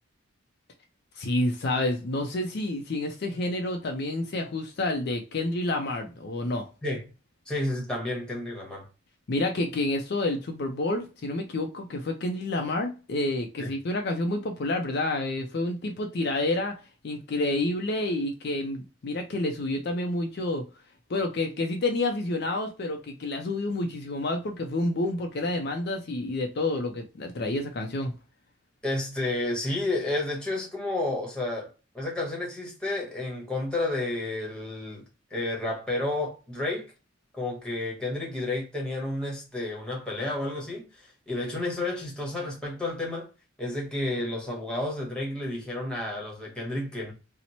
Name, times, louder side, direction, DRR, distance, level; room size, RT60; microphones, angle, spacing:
voice 1, 1.2-6.7 9.3-16.8 17.0-20.6 21.1-28.1, left 2 dB, 50° left, 0.4 m, -29 dB
voice 2, 7.5-8.9 13.6-13.7 28.8-35.0 35.3-36.9 37.3-43.3 43.6-47.1, left 2 dB, 5° left, 1.0 m, -31 dB
2.9 x 2.0 x 4.0 m
head